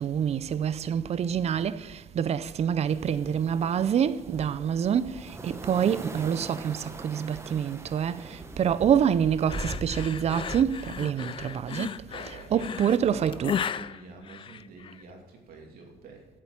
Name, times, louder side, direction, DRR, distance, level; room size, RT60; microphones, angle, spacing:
voice 1, 0.0-13.5, right 8 dB, 40° right, 0.5 m, -27 dB
sound 1, 2.9-11.2, right 2 dB, 15° right, 0.9 m, -41 dB
sound 2, 9.5-15.0, left 8 dB, 30° left, 0.4 m, -35 dB
voice 2, 12.0-16.3, right 3 dB, 60° right, 2.6 m, -47 dB
8.3 x 7.6 x 7.6 m
cardioid pair, 110°, 17 cm